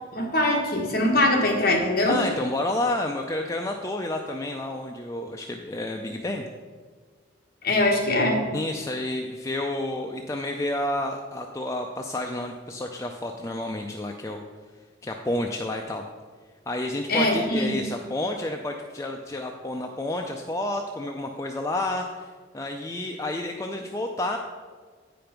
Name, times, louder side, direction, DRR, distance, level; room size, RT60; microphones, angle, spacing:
voice 1, 0.1-2.2 7.6-8.5 17.1-17.7, left 1 dB, 50° left, -1 dB, 1.6 m, -22 dB
voice 2, 2.1-6.4 8.5-14.4 15.0-16.0 16.7-24.4, left 1 dB, 15° left, 2 dB, 0.4 m, -30 dB
8.7 x 5.2 x 5.8 m, 1.5 s
head